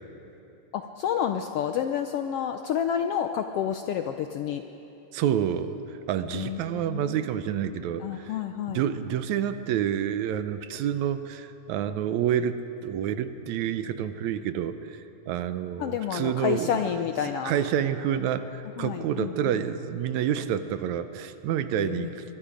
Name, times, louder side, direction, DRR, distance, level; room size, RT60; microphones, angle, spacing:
voice 1, 0.7-4.6 6.3-7.2 8.0-8.8 15.8-17.5 18.8-19.6 21.7-22.1, left 9 dB, 80° left, 7 dB, 1.3 m, -29 dB
voice 2, 5.1-8.3 8.7-16.8 17.2-22.4, right 9 dB, 80° right, 11 dB, 2.1 m, -28 dB
23.5 x 22.5 x 5.1 m, 3.0 s
omnidirectional pair, 3.4 m